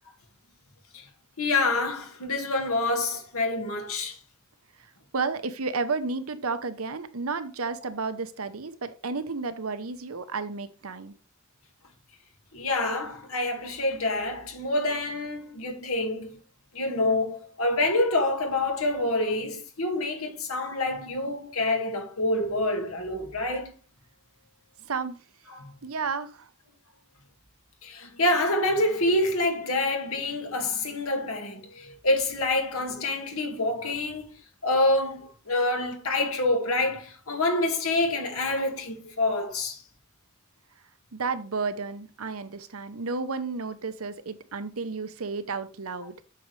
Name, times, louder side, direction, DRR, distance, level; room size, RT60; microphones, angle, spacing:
voice 1, 1.4-4.2 12.5-16.3 16.7-23.7 25.5-25.7 27.8-39.8, left 2 dB, 85° left, 2.0 m, -27 dB
voice 2, 5.1-11.1 24.8-25.2 25.8-26.5 41.1-46.2, right 4 dB, 85° right, 0.9 m, -32 dB
8.6 x 6.3 x 3.3 m
head